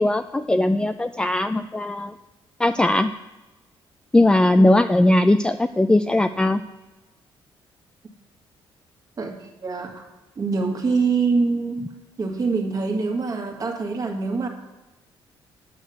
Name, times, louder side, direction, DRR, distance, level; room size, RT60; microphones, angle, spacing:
voice 1, 0.0-2.1 2.6-3.1 4.1-6.6, left 1 dB, 10° left, 9 dB, 0.3 m, -19 dB
voice 2, 9.2-10.1 10.4-11.8 12.2-14.5, right 4 dB, 40° right, 3 dB, 1.7 m, -24 dB
9.3 x 6.5 x 6.8 m, 1.1 s
cardioid pair, 95°, 9 cm